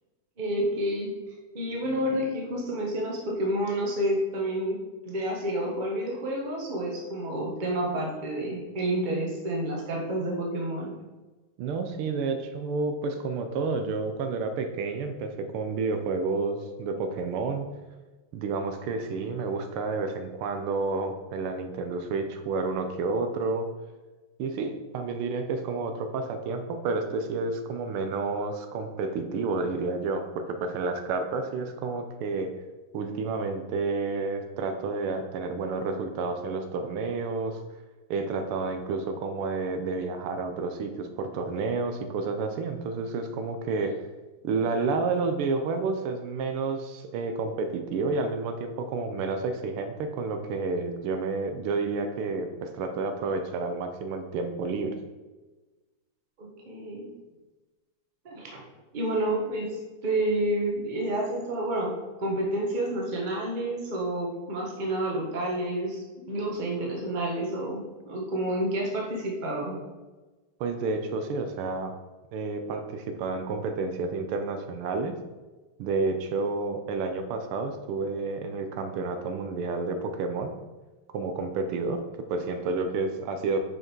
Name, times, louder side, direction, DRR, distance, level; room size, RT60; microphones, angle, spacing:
voice 1, 0.4-1.1 1.5-11.0 56.4-57.1 58.2-58.6 58.9-61.9 62.2-69.8, right 1 dB, 25° right, -2 dB, 1.1 m, -29 dB
voice 2, 11.6-17.7 18.3-23.7 24.4-32.5 32.9-37.6 38.1-44.0 44.4-55.0 70.6-71.9 72.3-75.1 75.8-80.5 81.1-82.0 82.3-83.6, right 3 dB, 85° right, 6 dB, 1.6 m, -30 dB
6.2 x 5.3 x 4.5 m, 1.2 s
omnidirectional pair, 2.4 m